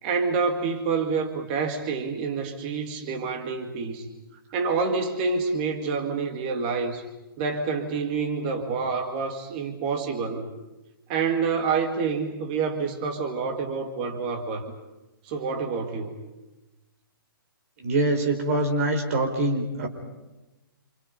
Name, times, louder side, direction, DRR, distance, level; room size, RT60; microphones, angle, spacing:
voice 1, 0.0-4.1 4.5-7.1 7.4-10.5 11.1-14.7 15.3-16.2, right 5 dB, 25° right, 5 dB, 1.9 m, -27 dB
voice 2, 17.8-19.9, right 2 dB, 40° right, 3 dB, 4.7 m, -24 dB
28.5 x 27.5 x 5.3 m, 1.0 s
hypercardioid pair, 170°, 12 cm